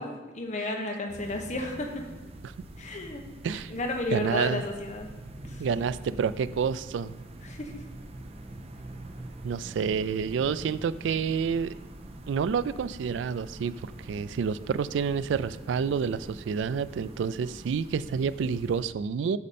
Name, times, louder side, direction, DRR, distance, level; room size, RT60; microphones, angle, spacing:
voice 1, 0.0-2.0 2.8-3.2 3.7-5.1 5.4-5.6 7.4-7.8, left 2 dB, 40° left, 2 dB, 1.0 m, -33 dB
sound 1, 1.1-18.8, right 1 dB, 35° right, 0.6 m, -44 dB
voice 2, 4.1-4.6 5.6-7.1 9.4-11.7 12.3-19.4, right 6 dB, 80° right, 16 dB, 0.3 m, -29 dB
8.4 x 6.5 x 4.2 m, 1.2 s
head